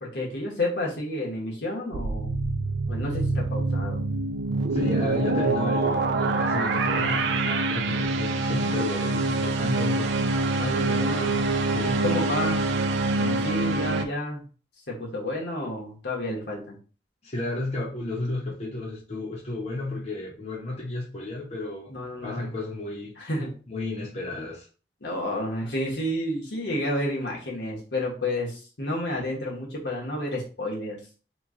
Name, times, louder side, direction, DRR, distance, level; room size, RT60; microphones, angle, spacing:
voice 1, 0.0-2.4 2.9-4.0 10.6-11.4 11.8-12.6 13.1-14.4 14.9-16.8 21.9-22.5 23.2-23.6 25.0-31.0, left 1 dB, 80° left, 1.2 m, -30 dB
sound 1, 1.9-14.1, right 3 dB, 85° right, 0.4 m, -25 dB
voice 2, 4.7-10.5 11.7-12.0 17.2-21.9 22.2-23.1 23.7-24.7, left 2 dB, 35° left, 0.8 m, -32 dB
3.0 x 2.3 x 3.6 m
head